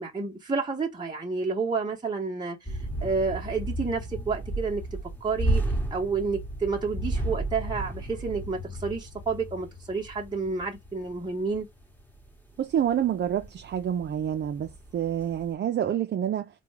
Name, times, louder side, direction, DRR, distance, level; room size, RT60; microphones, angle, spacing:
voice 1, 0.0-4.8 5.2-5.6 5.9-11.7, right 4 dB, 15° right, 0.9 m, -30 dB
sound 1, 2.6-12.4 12.8-15.5, right 1 dB, 5° left, 1.1 m, -33 dB
voice 2, 12.6-16.5, right 10 dB, 40° right, 0.4 m, -28 dB
3.6 x 2.2 x 3.1 m
cardioid pair, 90°, 30 cm